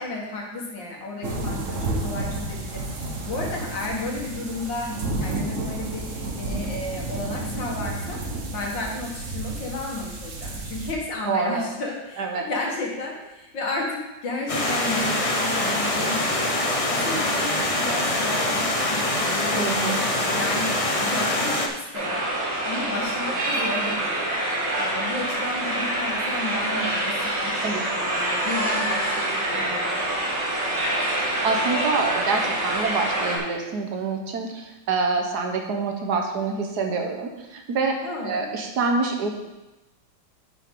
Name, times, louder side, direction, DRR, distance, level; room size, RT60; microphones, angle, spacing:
voice 1, 0.0-8.2 8.5-22.2 22.6-24.3 24.8-30.0 38.0-38.5, left 2 dB, 80° left, -2 dB, 2.4 m, -33 dB
sound 1, 1.2-10.9, right 2 dB, 50° right, 1.3 m, -31 dB
voice 2, 11.3-11.7 12.2-12.4 19.5-20.0 27.6-27.8 31.4-37.9 38.2-39.3, right 4 dB, 65° right, 3 dB, 1.5 m, -26 dB
Stream, 14.5-21.7, left 1 dB, 40° left, 0.4 m, -24 dB
sound 2, 21.9-33.4, right 1 dB, 80° right, 2.8 m, -26 dB
9.7 x 6.8 x 3.7 m, 1.0 s
omnidirectional pair, 2.0 m